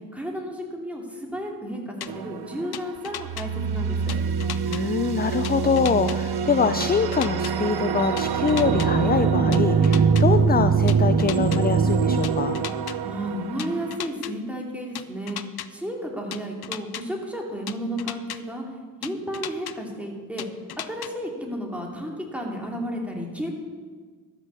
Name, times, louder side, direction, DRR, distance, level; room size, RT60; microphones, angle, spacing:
voice 1, 0.1-4.2 13.0-15.4 15.7-18.6 19.0-20.5 20.9-23.5, equal, 5° right, -1 dB, 2.7 m, -32 dB
sound 1, 2.0-2.1 2.7-3.5 4.1-4.8 5.4-6.2 6.8-7.5 8.2-8.9 9.5-10.2 10.9-11.6 12.2-13.0 13.6-14.3 15.0-15.7 16.3-17.0 17.7-18.4 19.0-19.7 20.4-21.1, left 11 dB, 75° left, 0.6 m, -35 dB
sound 2, 2.1-2.7 3.1-13.8, right 6 dB, 80° right, 0.7 m, -23 dB
voice 2, 4.7-12.6, left 6 dB, 25° left, 10 dB, 0.4 m, -24 dB
13.0 x 6.1 x 6.9 m, 1.5 s
cardioid pair, 60°, 38 cm